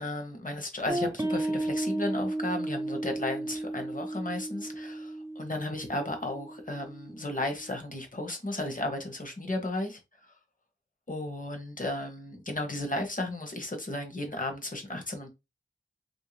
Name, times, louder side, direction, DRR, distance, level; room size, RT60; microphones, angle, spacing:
voice 1, 0.0-10.3 11.1-15.3, left 1 dB, 40° left, 1.1 m, -34 dB
sound 1, 0.9-7.8, right 2 dB, 15° right, 0.5 m, -34 dB
3.1 x 2.7 x 3.2 m
wide cardioid pair, 60°, 21 cm